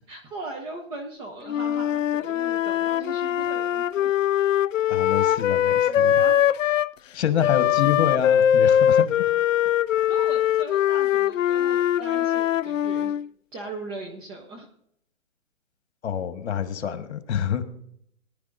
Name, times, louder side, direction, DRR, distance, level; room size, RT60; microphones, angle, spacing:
voice 1, 0.1-4.1 5.3-6.4 10.1-13.1 13.5-14.7, right 2 dB, 10° right, 1 dB, 0.7 m, -39 dB
Wind instrument woodwind instrument, 1.5-6.9 7.4-13.3, left 10 dB, 70° left, 0.5 m, -22 dB
voice 2, 4.9-6.2 7.1-9.1 16.0-17.6, left 8 dB, 55° left, 9 dB, 1.6 m, -27 dB
19.5 x 11.0 x 2.6 m, 0.69 s
hypercardioid pair, 145°, 40 cm